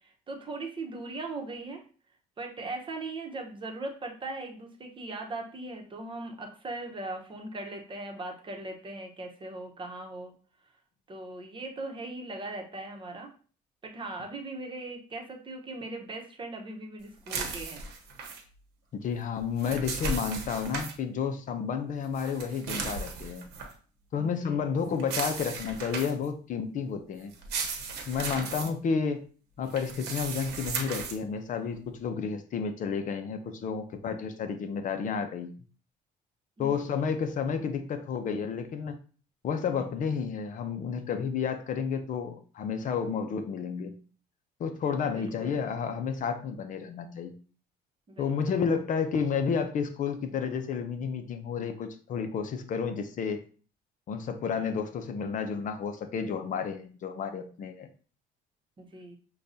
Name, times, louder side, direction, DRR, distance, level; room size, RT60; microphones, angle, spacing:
voice 1, 0.3-1.8 2.4-10.3 11.1-13.3 13.8-17.8 20.1-20.2 24.1-24.6 28.4-28.7 36.6-36.9 45.1-45.7 48.1-48.5 58.8-59.2, right 2 dB, 30° right, 2 dB, 0.9 m, -39 dB
sound 1, 17.3-18.4 19.4-20.9 22.1-23.7 25.0-26.3 27.3-28.7 29.7-31.2, right 4 dB, 80° right, 1.0 m, -36 dB
voice 2, 19.0-23.5 24.1-27.3 28.1-29.2 29.6-35.5 36.6-39.0 39.4-44.0 44.6-47.3 48.2-53.4 54.1-57.9, left 6 dB, 50° left, 7 dB, 0.6 m, -31 dB
6.4 x 2.3 x 2.7 m, 0.40 s
cardioid pair, 110°, 17 cm